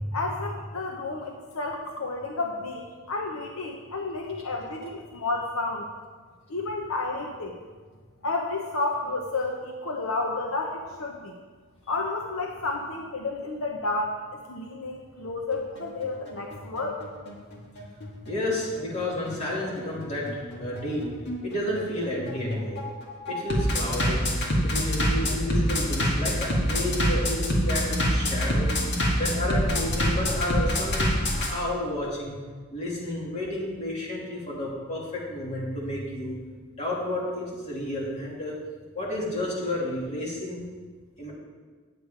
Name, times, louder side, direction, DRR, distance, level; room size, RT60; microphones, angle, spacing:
voice 1, 0.1-5.9 6.5-7.6 8.2-11.4 11.9-17.0, left 3 dB, 70° left, 1 dB, 0.8 m, -31 dB
Bass drum, 15.5-31.5, equal, 50° left, 2.1 m, -26 dB
voice 2, 18.3-21.1 21.4-22.8 23.3-24.2 24.6-28.7 29.2-32.4 32.7-36.3 36.8-38.6 38.9-40.6 41.2-41.3, left 1 dB, 30° left, -5 dB, 2.8 m, -31 dB
9.6 x 8.0 x 5.1 m, 1.5 s
head